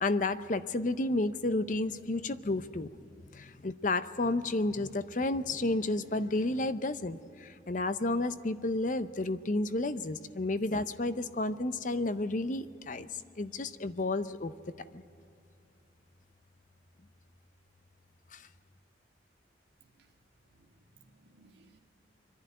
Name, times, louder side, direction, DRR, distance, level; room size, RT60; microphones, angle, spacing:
voice 1, 0.0-2.9 3.3-14.5 14.9-15.0 18.3-18.5, left 2 dB, 45° left, 12 dB, 0.6 m, -31 dB
voice 2, 19.8-20.1 20.5-21.8, right 3 dB, 65° right, 0 dB, 2.1 m, -63 dB
25.5 x 11.0 x 9.3 m, 2.5 s
head